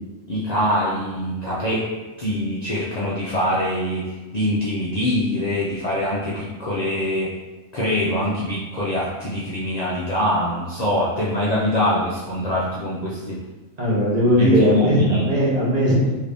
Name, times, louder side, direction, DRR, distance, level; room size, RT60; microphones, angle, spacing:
voice 1, 0.3-7.4 7.7-13.4 14.4-15.3, equal, 90° left, -7 dB, 0.3 m, -24 dB
voice 2, 13.8-16.1, equal, 40° right, -7 dB, 0.7 m, -18 dB
2.8 x 2.6 x 3.3 m, 1.2 s
omnidirectional pair, 1.4 m